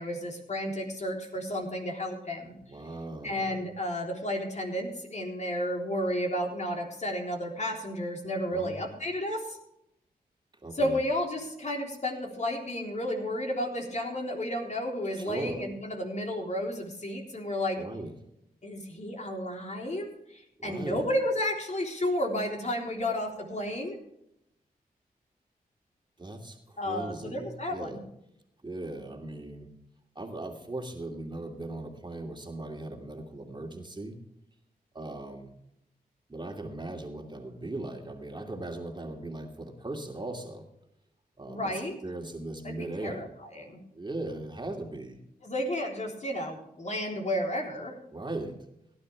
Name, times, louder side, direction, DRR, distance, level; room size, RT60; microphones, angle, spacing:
voice 1, 0.0-2.5 3.2-9.6 10.7-17.8 18.6-24.0 26.8-28.0 41.5-41.9 42.6-43.3 43.5-43.8 45.4-47.9, left 1 dB, 45° left, 1 dB, 3.6 m, -32 dB
voice 2, 2.6-3.7 8.5-8.8 10.6-11.0 15.2-15.7 17.8-18.1 20.6-21.1 26.2-28.0 28.6-29.7 30.1-34.2 34.9-35.5 36.3-40.6 41.4-43.2 43.9-45.2 48.1-48.6, right 2 dB, 30° right, 2 dB, 2.6 m, -38 dB
17.5 x 11.5 x 3.4 m, 0.78 s
cardioid pair, 55°, 16 cm